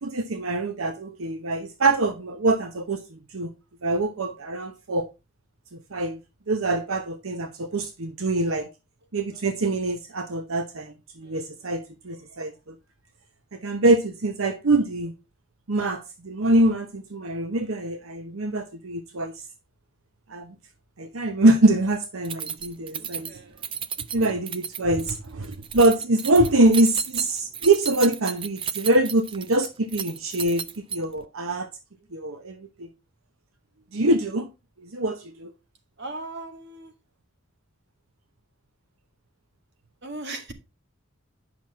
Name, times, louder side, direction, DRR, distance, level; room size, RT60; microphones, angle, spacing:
voice 1, 0.0-3.5 3.8-5.0 5.7-6.2 6.5-8.7 9.1-12.8 13.5-15.1 15.7-19.4 20.3-20.5 21.0-23.3 24.1-31.7 32.1-32.9 33.9-34.5 34.8-35.5, right 2 dB, 75° right, 0.8 m, -24 dB
Keys jangling, 22.2-31.3, right 7 dB, 25° right, 0.4 m, -34 dB
voice 2, 23.0-23.7 36.0-36.9 40.0-40.5, right 2 dB, 50° right, 2.0 m, -38 dB
9.7 x 6.1 x 4.1 m
head